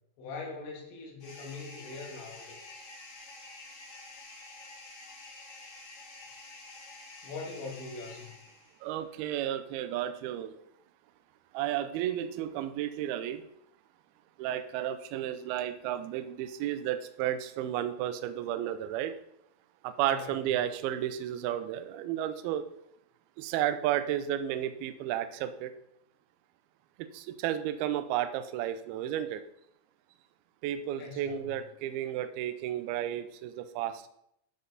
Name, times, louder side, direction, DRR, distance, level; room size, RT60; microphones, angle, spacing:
voice 1, 0.2-2.8 7.2-8.3 20.0-20.5 31.0-31.4, left 3 dB, 85° left, -1 dB, 4.2 m, -42 dB
sound 1, 1.2-8.9, left 2 dB, 60° left, 1.2 m, -49 dB
voice 2, 8.8-10.6 11.5-13.4 14.4-19.1 19.8-22.6 23.4-25.7 27.1-29.4 30.6-34.1, right 11 dB, 80° right, 10 dB, 2.3 m, -32 dB
12.0 x 5.6 x 4.1 m, 0.74 s
omnidirectional pair, 5.0 m